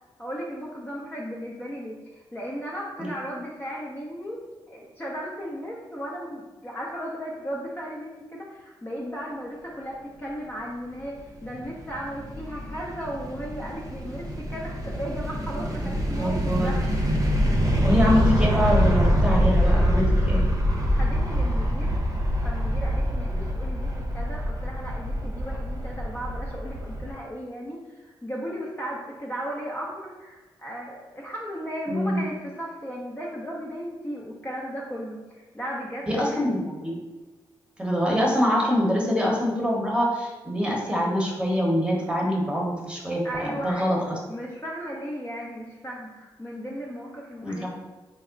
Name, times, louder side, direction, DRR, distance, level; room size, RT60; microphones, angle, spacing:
voice 1, 0.2-4.4 4.7-16.8 20.9-21.9 22.4-36.5 43.2-43.9 44.3-47.7, equal, 20° left, -4 dB, 0.6 m, -36 dB
sound 1, 11.4-19.7, equal, 75° left, 0.7 m, -41 dB
sound 2, 11.6-27.1, equal, 35° right, 0.8 m, -25 dB
voice 2, 16.2-16.7 17.8-20.5 23.3-23.4 31.9-32.3 36.1-37.0 37.8-44.2 47.4-47.7, equal, 10° right, -3 dB, 1.0 m, -25 dB
3.5 x 2.1 x 3.7 m, 1.2 s
cardioid pair, 55°, 10 cm